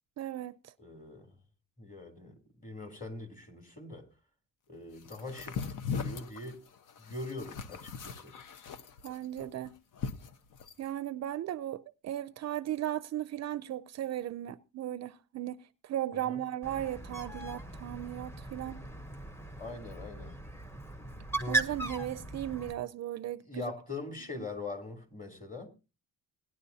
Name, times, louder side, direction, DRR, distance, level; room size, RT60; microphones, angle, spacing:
voice 1, 0.2-0.7 9.0-9.7 10.8-18.8 21.5-23.7, right 12 dB, 50° right, 0.5 m, -36 dB
voice 2, 0.8-1.3 1.8-4.1 4.7-5.6 5.9-6.6 7.0-8.3 16.1-16.4 19.6-20.3 23.4-25.7, left 3 dB, 25° left, 3.1 m, -42 dB
sound 1, 5.0-10.9, left 6 dB, 70° left, 1.1 m, -39 dB
Bird, 16.6-22.7, right 2 dB, 5° left, 0.9 m, -38 dB
18.5 x 10.5 x 2.7 m
cardioid pair, 130°, 33 cm